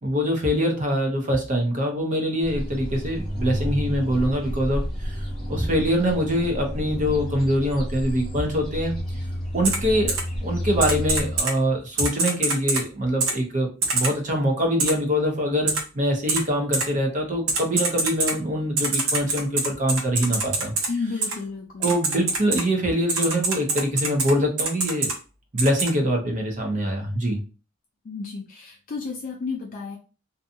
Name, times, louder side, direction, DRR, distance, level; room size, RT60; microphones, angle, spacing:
voice 1, 0.0-5.1 5.5-9.0 9.5-20.7 21.8-25.1 25.5-27.4, equal, 35° right, 2 dB, 0.7 m, -24 dB
sound 1, 2.4-11.4, equal, ahead, 1.0 m, -30 dB
Typing, 9.6-9.8 10.1-10.2 10.8-11.5 12.0-12.8 13.2-13.3 13.8-14.1 14.8-14.9 15.7-15.8 16.3-16.4 16.7-16.8 17.5-18.3 18.8-20.9 21.2-21.3 21.8-22.6 23.1-24.3 24.6-25.1 25.6-25.9, right 3 dB, 75° right, 0.8 m, -24 dB
voice 2, 20.9-22.0 28.0-30.0, left 4 dB, 40° left, 1 dB, 0.4 m, -32 dB
2.6 x 2.3 x 2.6 m, 0.34 s
head